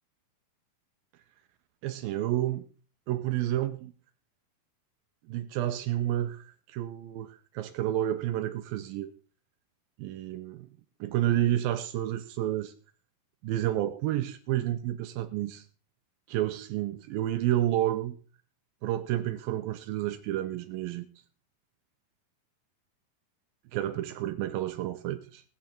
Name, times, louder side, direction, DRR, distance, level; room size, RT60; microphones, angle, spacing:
voice 1, 1.8-2.6 3.1-3.9 5.3-9.1 10.0-10.7 11.0-12.7 13.4-15.6 16.3-18.2 18.8-21.1 23.7-25.4, right 13 dB, 80° right, 2.5 m, -30 dB
17.5 x 8.7 x 4.4 m
omnidirectional pair, 4.1 m